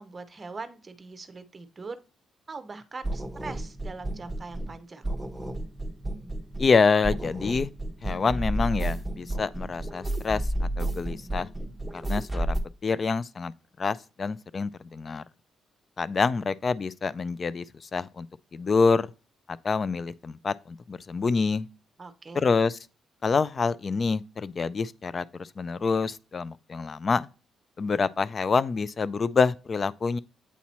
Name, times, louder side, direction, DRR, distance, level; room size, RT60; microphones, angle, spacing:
voice 1, 0.0-2.0 2.5-5.1 22.0-22.4, right 4 dB, 30° right, 0.7 m, -41 dB
sound 1, 3.0-4.8 5.0-6.8 7.0-12.6, right 1 dB, ahead, 1.1 m, -32 dB
voice 2, 6.6-7.7 8.0-11.5 11.9-12.6 12.8-15.2 16.0-18.3 18.5-19.1 19.5-21.7 22.3-22.8 23.2-27.3 27.8-30.2, left 4 dB, 40° left, 0.3 m, -27 dB
8.3 x 2.9 x 4.2 m
cardioid pair, 90°, 0 cm